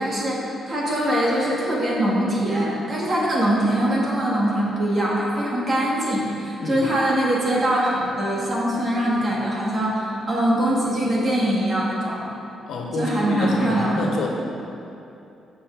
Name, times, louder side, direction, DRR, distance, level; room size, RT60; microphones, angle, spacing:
voice 1, 0.0-12.2 12.9-14.0, right 1 dB, 30° right, -5 dB, 2.4 m, -22 dB
voice 2, 12.7-14.3, left 3 dB, 70° left, -1 dB, 1.7 m, -27 dB
16.0 x 6.2 x 4.9 m, 2.7 s
cardioid pair, 165°, 0 cm